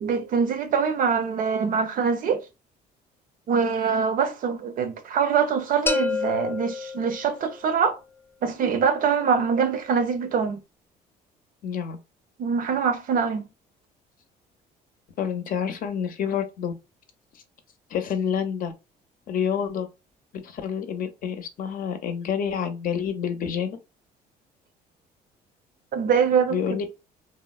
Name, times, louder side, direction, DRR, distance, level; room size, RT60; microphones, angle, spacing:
voice 1, 0.0-2.4 3.5-8.0 8.4-10.6 12.4-13.5 25.9-26.8, right 6 dB, 55° right, 0.6 m, -24 dB
sound 1, 5.9-7.7, left 4 dB, 15° left, 0.3 m, -28 dB
voice 2, 11.6-12.0 15.2-16.7 17.9-18.7 19.3-19.9 20.4-23.8 26.5-26.8, left 7 dB, 55° left, 0.6 m, -28 dB
3.4 x 2.0 x 2.3 m
cardioid pair, 110°, 17 cm